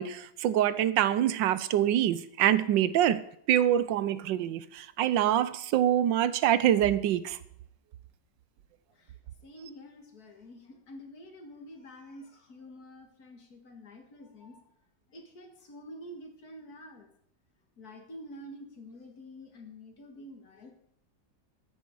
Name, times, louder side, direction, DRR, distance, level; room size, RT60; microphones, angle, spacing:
voice 1, 0.0-3.2 3.5-7.4, right 11 dB, 85° right, 1.4 m, -25 dB
voice 2, 9.4-14.7 15.1-17.1 17.8-20.7, equal, 55° left, 2.3 m, -48 dB
14.0 x 9.9 x 4.7 m
omnidirectional pair, 1.9 m